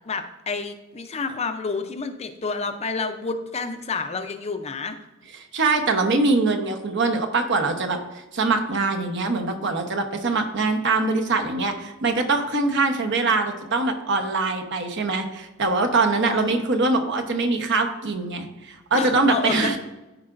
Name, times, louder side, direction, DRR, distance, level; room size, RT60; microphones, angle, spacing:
voice 1, 0.1-5.0 16.3-16.6 18.9-19.8, left 4 dB, 30° left, 7 dB, 0.6 m, -29 dB
voice 2, 5.5-8.0 8.3-19.8, right 3 dB, 60° right, 5 dB, 0.9 m, -23 dB
13.5 x 4.8 x 2.6 m, 1.1 s
head